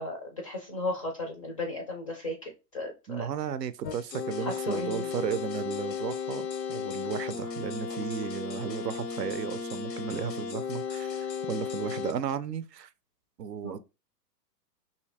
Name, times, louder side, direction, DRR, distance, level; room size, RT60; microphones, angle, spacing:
voice 1, 0.0-3.3 4.4-5.1 13.6-13.8, left 1 dB, 25° left, 0.3 m, -35 dB
voice 2, 3.1-12.9 13.4-13.8, right 8 dB, 80° right, 0.6 m, -34 dB
sound 1, 3.8-12.1, left 6 dB, 85° left, 0.7 m, -35 dB
2.8 x 2.7 x 3.3 m
figure-of-eight pair, 115°, 49 cm